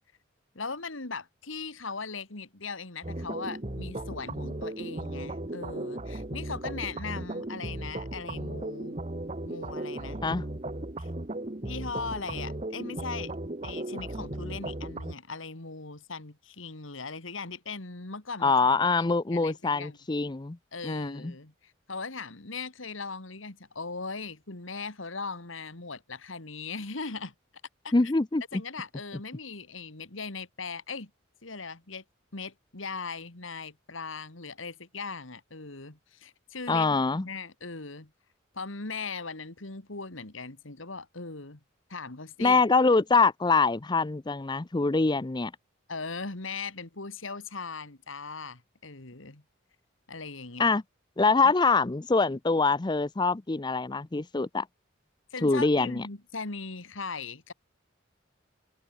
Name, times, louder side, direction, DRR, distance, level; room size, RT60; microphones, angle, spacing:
voice 1, 0.5-9.0 9.5-10.2 11.0-11.1 11.6-13.3 13.6-19.1 19.3-20.0 20.7-27.3 27.8-27.9 28.5-31.1 31.4-32.0 32.3-38.1 38.5-41.6 41.9-42.6 45.9-49.4 50.1-50.7 51.4-51.5 55.3-57.5, left 4 dB, 75° left, 2.3 m, -39 dB
sound 1, 3.0-15.1, right 1 dB, 30° right, 1.2 m, -36 dB
voice 2, 18.4-20.6 20.8-21.3 27.9-28.6 36.7-37.3 42.4-45.5 50.6-50.8 51.2-54.7 55.4-56.0, left 3 dB, 20° left, 0.5 m, -24 dB
open air
head